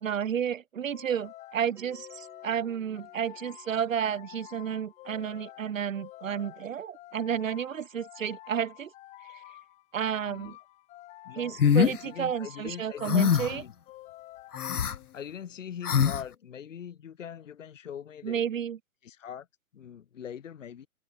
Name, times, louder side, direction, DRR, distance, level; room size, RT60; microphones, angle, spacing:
voice 1, 0.0-8.9 9.2-9.4 9.9-10.6 11.3-13.6 18.2-18.8, right 8 dB, 60° right, 1.7 m, -31 dB
sound 1, 0.9-15.5, left 16 dB, 15° left, 2.5 m, -49 dB
Bell, 1.8-6.8, right 4 dB, 5° right, 6.9 m, -61 dB
voice 2, 10.2-10.6 11.2-13.7 15.1-18.5 19.0-19.5 19.7-20.9, left 8 dB, 55° left, 2.3 m, -42 dB
sound 2, 11.6-12.0 13.0-13.6 14.5-14.9 15.8-16.2, left 7 dB, 80° left, 1.4 m, -23 dB
hypercardioid pair, 155°, 44 cm